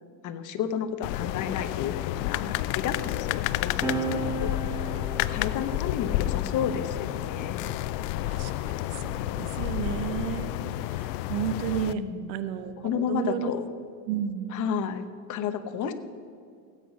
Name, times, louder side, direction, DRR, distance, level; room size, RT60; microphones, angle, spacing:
voice 1, 0.2-4.9 5.3-7.6 11.9-12.4 12.8-13.7 14.5-15.9, left 8 dB, 40° left, 9 dB, 0.9 m, -32 dB
sound 1, 1.0-11.9, left 16 dB, 80° left, 0.6 m, -30 dB
sound 2, 3.8-10.7 11.7-13.5, right 4 dB, 5° right, 1.2 m, -38 dB
voice 2, 8.3-10.5 10.9-12.0 12.3-13.5 14.1-14.6, right 9 dB, 90° right, 11 dB, 1.0 m, -32 dB
16.5 x 8.3 x 5.3 m, 2.2 s
supercardioid pair, 125°, 49 cm